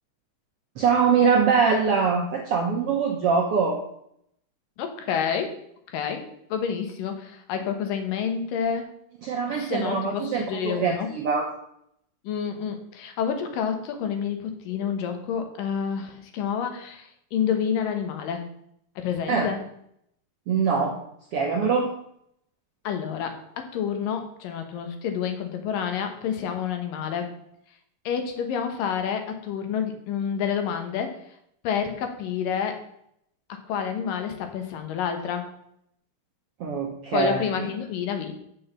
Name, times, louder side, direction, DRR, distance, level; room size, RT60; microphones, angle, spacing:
voice 1, 0.8-3.8 9.2-11.5 19.3-19.5 20.5-21.0 21.3-21.9 36.6-37.7, right 5 dB, 70° right, 1 dB, 1.4 m, -23 dB
voice 2, 4.8-5.6 5.9-6.3 6.5-8.9 9.5-11.1 12.2-18.5 19.0-19.6 22.8-27.4 28.1-31.2 31.6-32.8 33.7-35.5 37.1-38.3, left 7 dB, 80° left, 6 dB, 2.8 m, -29 dB
6.7 x 6.3 x 7.2 m, 0.71 s
omnidirectional pair, 3.9 m